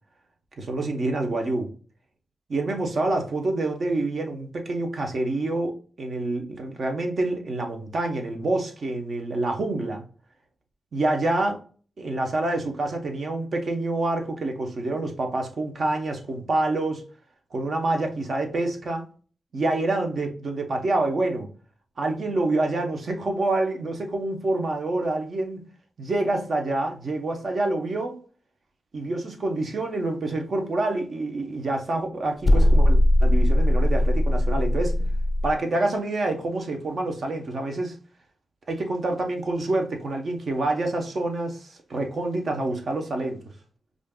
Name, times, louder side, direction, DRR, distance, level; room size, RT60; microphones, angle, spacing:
voice 1, 0.6-1.7 2.5-10.0 10.9-11.6 12.0-17.0 17.5-19.1 19.5-21.5 22.0-25.7 26.0-28.2 28.9-35.1 35.4-38.0 38.7-43.4, right 2 dB, 55° right, 0.8 m, -27 dB
sound 1, 32.4-35.5, left 1 dB, 30° left, 0.4 m, -19 dB
5.1 x 2.5 x 2.2 m
cardioid pair, 70°, 0 cm